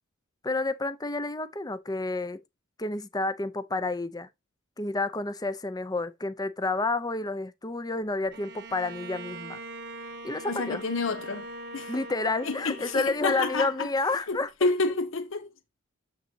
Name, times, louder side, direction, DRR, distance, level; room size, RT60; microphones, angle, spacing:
voice 1, 0.4-2.4 2.8-4.3 4.8-9.6 10.2-10.8 11.9-14.5, left 3 dB, 20° left, 0.6 m, -30 dB
Bowed string instrument, 8.3-14.1, right 2 dB, 55° right, 1.1 m, -42 dB
voice 2, 10.5-11.5 11.7-11.9 12.4-13.9 14.3-15.5, left 3 dB, 70° left, 0.8 m, -29 dB
7.5 x 5.5 x 2.8 m
head